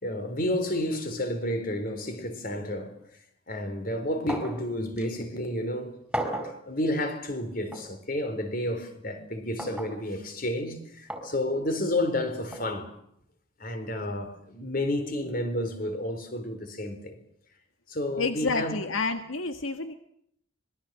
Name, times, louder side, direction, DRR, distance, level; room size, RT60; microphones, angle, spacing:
voice 1, 0.0-3.0 3.5-6.0 6.7-13.0 13.6-17.2 17.9-18.8, left 1 dB, 45° left, 4.2 m, -31 dB
sound 1, 4.3-4.6 5.0-5.1 6.1-6.6 7.7-7.9 9.6-9.9 11.1-11.3 12.5-12.7, right 1 dB, 5° right, 4.3 m, -33 dB
voice 2, 18.2-19.9, left 3 dB, 80° left, 1.7 m, -29 dB
26.0 x 22.0 x 7.7 m
head